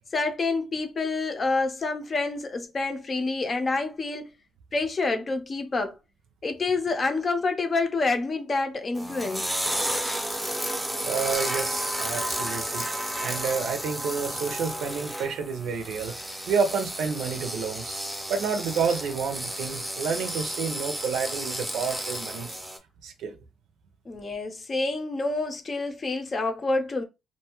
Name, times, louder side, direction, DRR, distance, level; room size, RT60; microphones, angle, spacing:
voice 1, 0.1-4.3 4.7-6.0 6.4-9.5 24.1-27.0, left 3 dB, 35° left, 0.6 m, -28 dB
sound 1, 9.0-22.8, right 1 dB, 5° right, 0.7 m, -32 dB
voice 2, 11.0-12.8 13.2-18.0 18.3-22.6 23.0-23.4, right 5 dB, 80° right, 0.5 m, -29 dB
2.6 x 2.3 x 2.9 m
cardioid pair, 90°, 0 cm